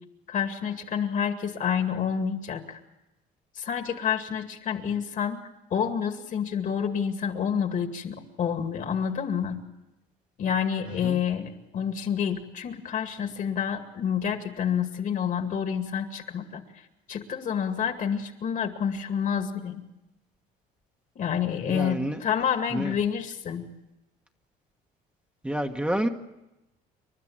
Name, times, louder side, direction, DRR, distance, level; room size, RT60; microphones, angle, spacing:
voice 1, 0.3-2.8 3.6-5.4 5.7-9.6 10.4-16.6 17.1-19.8 21.2-23.7, left 7 dB, 50° left, 6 dB, 2.3 m, -28 dB
voice 2, 21.7-22.2 22.7-22.9 25.4-26.1, right 1 dB, 5° right, 4 dB, 1.3 m, -28 dB
29.0 x 12.0 x 8.8 m, 0.97 s
cardioid pair, 110°, 17 cm